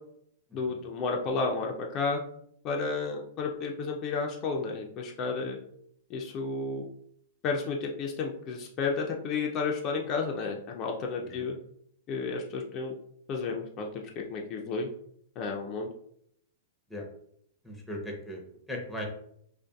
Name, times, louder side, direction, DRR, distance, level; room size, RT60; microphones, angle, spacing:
voice 1, 0.5-2.2 2.6-5.6 6.1-6.8 7.4-11.6 12.1-12.9 13.3-14.9 15.4-15.9, left 4 dB, 35° left, 0 dB, 0.4 m, -32 dB
voice 2, 17.6-18.4 18.7-19.0, left 1 dB, ahead, -1 dB, 0.7 m, -38 dB
2.5 x 2.4 x 2.3 m, 0.70 s
hypercardioid pair, 120°, 0 cm